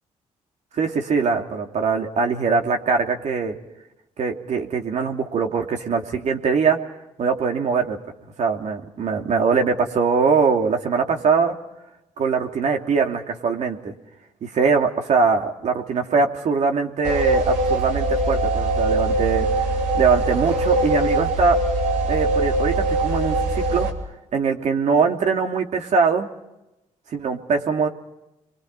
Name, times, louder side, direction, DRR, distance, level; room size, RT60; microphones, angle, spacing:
voice 1, 0.8-3.6 4.2-6.8 7.2-8.0 8.4-11.5 12.2-13.9 14.4-19.7 19.9-21.6 22.1-23.9 24.3-26.3 27.1-27.9, right 5 dB, 65° right, 3 dB, 2.9 m, -22 dB
sound 1, 17.0-23.9, right 2 dB, 85° right, 3.5 m, -22 dB
28.0 x 23.5 x 5.5 m, 0.93 s
cardioid pair, 80°, 12 cm